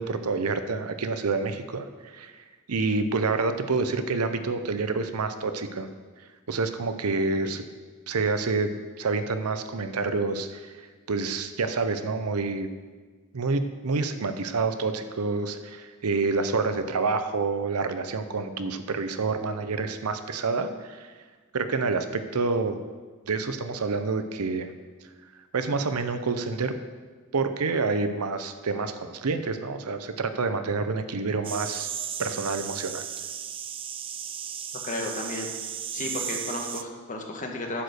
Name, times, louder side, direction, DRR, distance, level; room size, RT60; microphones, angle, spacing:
voice 1, 0.0-2.3 2.7-5.9 6.5-7.6 8.1-8.7 9.0-10.7 11.1-12.7 13.3-21.1 21.5-22.8 23.3-24.7 25.5-26.7 27.3-31.9 32.2-33.1, right 4 dB, 85° right, 9 dB, 0.7 m, -28 dB
sound 1, 31.4-36.8, right 8 dB, 25° right, 0.3 m, -35 dB
voice 2, 34.8-35.5 35.9-37.8, left 2 dB, 35° left, 2 dB, 1.3 m, -33 dB
10.0 x 5.1 x 6.4 m, 1.4 s
head